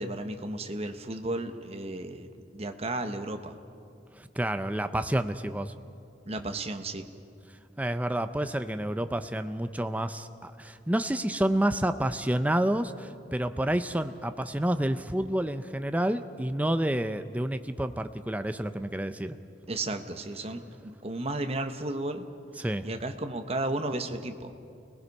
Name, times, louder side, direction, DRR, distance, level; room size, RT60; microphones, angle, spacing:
voice 1, 0.0-3.6 6.3-7.1 19.7-22.3 22.8-24.5, right 2 dB, 35° right, 7 dB, 1.2 m, -34 dB
voice 2, 4.2-5.7 7.8-19.3 22.6-22.9, right 1 dB, 10° right, 9 dB, 0.6 m, -29 dB
29.0 x 19.0 x 5.4 m, 2.5 s
head